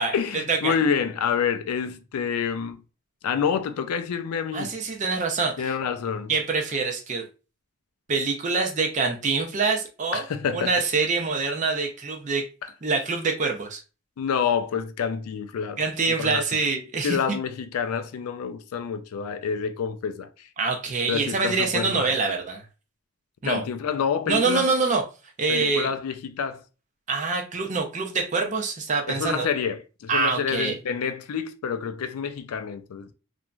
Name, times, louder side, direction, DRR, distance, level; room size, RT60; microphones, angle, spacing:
voice 1, 0.0-2.8 3.2-4.7 5.6-6.3 10.1-10.7 12.6-12.7 14.2-15.8 16.2-16.4 17.0-20.5 21.1-22.1 23.4-24.7 25.5-26.6 29.1-33.1, left 7 dB, 80° left, 0.4 m, -28 dB
voice 2, 4.5-5.7 6.3-7.2 8.1-10.2 10.5-12.5 12.8-13.8 15.8-17.4 20.6-22.6 23.4-23.6 24.3-25.0 25.4-25.9 27.1-29.5 30.1-30.7, right 4 dB, 35° right, 0.5 m, -25 dB
3.0 x 2.5 x 2.2 m
head